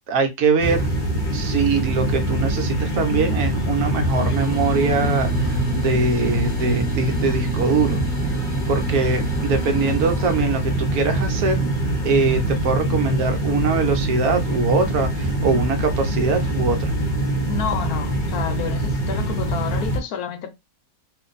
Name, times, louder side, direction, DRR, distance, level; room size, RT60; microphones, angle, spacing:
voice 1, 0.1-0.9 1.3-11.7 12.0-16.9, right 4 dB, 70° right, 1.1 m, -22 dB
sound 1, 0.6-20.0, right 1 dB, 40° left, 0.8 m, -24 dB
sound 2, 4.0-10.6, right 3 dB, 10° right, 0.4 m, -37 dB
voice 2, 17.5-20.5, left 7 dB, 70° left, 1.1 m, -29 dB
2.6 x 2.5 x 3.9 m
omnidirectional pair, 1.7 m